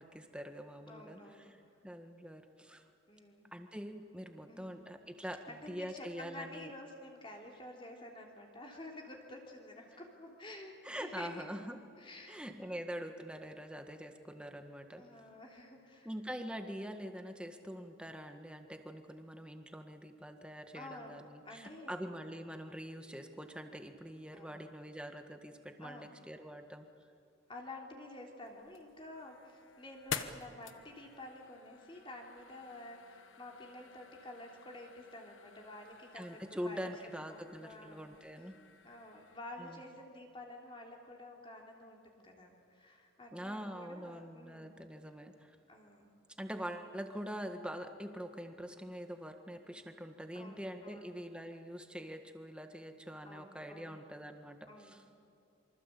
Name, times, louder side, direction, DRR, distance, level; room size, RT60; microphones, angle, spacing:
voice 1, 0.0-2.8 3.5-6.7 10.8-11.8 12.3-15.0 16.1-26.9 36.1-38.6 39.6-39.8 43.3-45.6 46.4-55.0, equal, 5° right, 5 dB, 1.6 m, -44 dB
voice 2, 0.8-1.5 3.1-3.5 4.5-4.8 5.5-11.6 12.0-12.9 15.0-16.1 20.7-21.2 21.4-22.0 24.3-24.6 25.8-26.1 27.5-36.9 37.3-38.0 38.8-44.8 45.7-46.1 50.3-51.1 53.2-54.0 54.7-55.0, left 1 dB, 25° left, 0 dB, 3.3 m, -50 dB
sound 1, 28.4-39.4, left 7 dB, 70° left, 1.3 m, -49 dB
27.0 x 24.5 x 8.4 m, 2.6 s
head